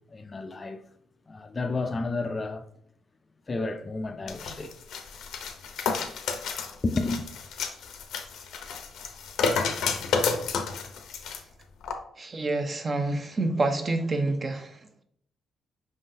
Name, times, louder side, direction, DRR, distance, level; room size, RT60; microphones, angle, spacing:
voice 1, 0.1-0.8 1.3-2.6 3.5-4.7 6.8-7.2, left 3 dB, 30° left, 0.4 m, -31 dB
sound 1, 4.3-11.4 11.8-12.0, left 5 dB, 80° left, 0.6 m, -31 dB
voice 2, 12.2-15.0, right 2 dB, 35° right, 0.6 m, -28 dB
5.4 x 3.7 x 2.6 m
cardioid pair, 90°, 0 cm